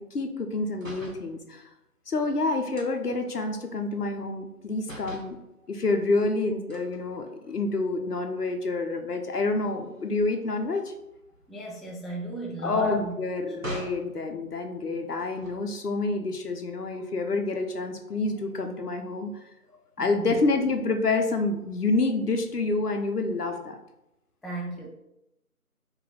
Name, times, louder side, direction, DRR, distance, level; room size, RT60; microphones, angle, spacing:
voice 1, 0.0-1.7 2.1-5.4 5.7-10.9 12.6-19.3 20.0-23.8, left 3 dB, 90° left, 5 dB, 0.7 m, -28 dB
sound 1, 0.7-1.3 2.8-4.6 4.8-5.4 6.7-7.7 8.2-8.4 8.7-14.1 15.2-15.9, right 1 dB, 60° right, 0.9 m, -44 dB
voice 2, 11.5-13.1 20.0-20.3 24.4-24.9, right 1 dB, ahead, -2 dB, 0.4 m, -34 dB
3.2 x 2.9 x 3.7 m, 0.88 s
figure-of-eight pair, 175°, 45 cm